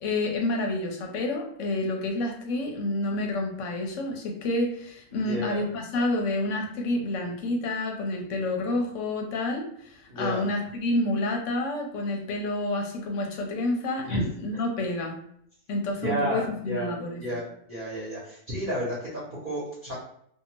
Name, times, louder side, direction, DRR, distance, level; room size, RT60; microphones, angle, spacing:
voice 1, 0.0-15.2 15.7-17.4, left 2 dB, 65° left, 2 dB, 0.8 m, -29 dB
voice 2, 5.1-5.7 10.1-10.5 14.1-14.2 16.0-16.9 17.2-19.9, right 1 dB, 40° right, -8 dB, 1.0 m, -32 dB
2.7 x 2.3 x 2.8 m, 0.69 s
omnidirectional pair, 1.5 m